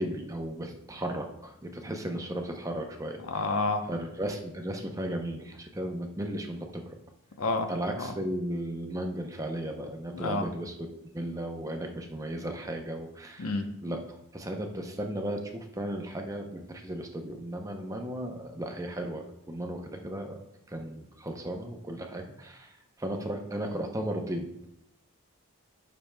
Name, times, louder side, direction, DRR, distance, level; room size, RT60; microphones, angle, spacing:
voice 1, 0.0-3.2 3.9-6.8 7.7-13.5 13.8-20.4 20.7-22.7 23.0-24.5, right 1 dB, 15° right, 4 dB, 0.6 m, -35 dB
voice 2, 3.2-3.8 7.4-7.7 8.0-8.1 10.1-10.5 13.4-13.7, left 3 dB, 85° left, 6 dB, 0.8 m, -29 dB
10.0 x 6.2 x 2.2 m, 0.81 s
head